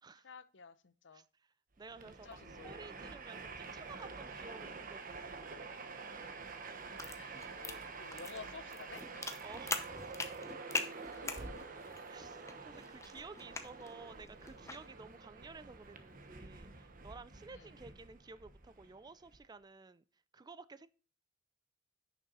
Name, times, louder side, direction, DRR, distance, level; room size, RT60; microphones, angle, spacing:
voice 1, 0.2-1.2 2.0-2.8 3.4-3.6 7.0-9.0 11.1-11.7 17.5-17.7, left 5 dB, 75° left, 0.7 m, -53 dB
voice 2, 1.1-2.4 2.6-5.6 9.4-9.9 12.1-20.0 20.3-20.9, right 4 dB, 20° right, 0.4 m, -53 dB
Train, 1.8-19.4, right 4 dB, 50° right, 1.1 m, -48 dB
sound 1, 6.4-14.9, left 3 dB, 15° left, 0.8 m, -44 dB
sound 2, 7.1-11.8, right 1 dB, 70° right, 3.3 m, -56 dB
9.9 x 6.1 x 4.1 m
head